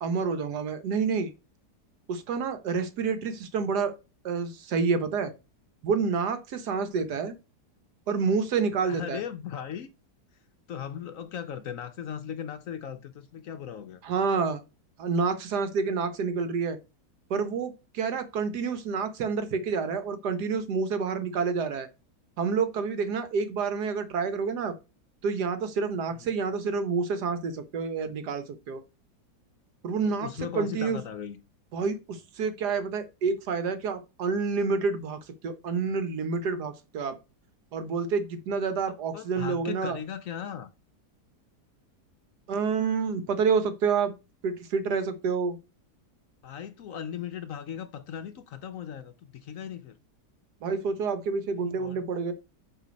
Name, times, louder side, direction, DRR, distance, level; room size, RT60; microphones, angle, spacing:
voice 1, 0.0-1.3 2.1-3.9 4.2-5.3 5.8-7.3 8.1-9.2 14.0-14.6 15.0-16.8 17.3-21.9 22.4-24.7 25.2-28.8 29.8-31.0 31.7-37.2 37.7-40.0 42.5-44.1 44.4-45.6 50.6-52.3, right 5 dB, 75° right, 1.5 m, -28 dB
voice 2, 8.8-9.9 10.3-10.4 10.7-14.0 26.1-26.3 30.0-31.4 39.1-40.7 46.4-50.0 51.6-52.0, left 8 dB, 65° left, 0.9 m, -38 dB
8.3 x 3.3 x 5.1 m
omnidirectional pair, 1.8 m